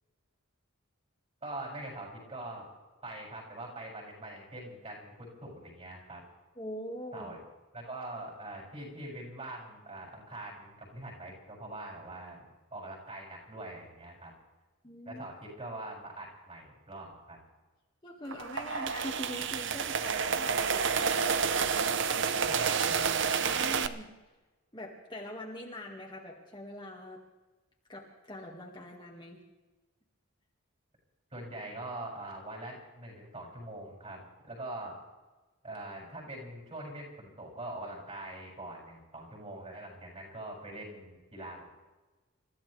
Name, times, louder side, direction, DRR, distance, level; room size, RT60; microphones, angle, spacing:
voice 1, 1.4-2.7 3.0-6.2 7.1-7.4 7.7-12.4 12.7-14.3 15.1-17.4 22.5-22.9 31.3-35.0 35.6-41.7, right 1 dB, 30° right, -1 dB, 7.2 m, -43 dB
voice 2, 6.6-7.3 14.8-15.3 18.0-21.6 23.4-24.1 24.7-27.2 27.9-29.4, left 1 dB, 20° left, -1 dB, 2.0 m, -43 dB
sound 1, 18.3-23.9, right 6 dB, 55° right, 0.8 m, -29 dB
29.0 x 15.0 x 3.4 m, 1.2 s
head